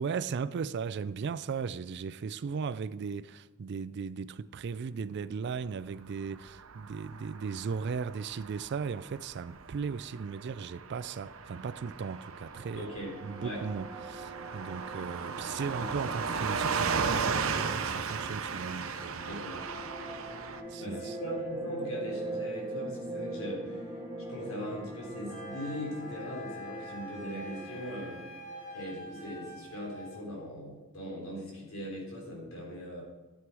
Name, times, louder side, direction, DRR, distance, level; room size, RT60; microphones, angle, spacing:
voice 1, 0.0-12.9 13.2-19.4 20.7-21.2, right 5 dB, 55° right, 0.4 m, -37 dB
Car passing by / Truck, 6.3-20.6, right 5 dB, 80° right, 0.8 m, -36 dB
sound 1, 12.0-28.9, right 2 dB, 10° right, 2.3 m, -43 dB
voice 2, 12.7-13.6 15.8-15.9 19.3-19.6 20.8-24.0 24.3-28.3 28.7-33.0, equal, 80° left, 3.7 m, -40 dB
Wind instrument woodwind instrument, 25.3-30.3, left 1 dB, 45° left, 3.2 m, -46 dB
13.0 x 7.7 x 4.7 m
head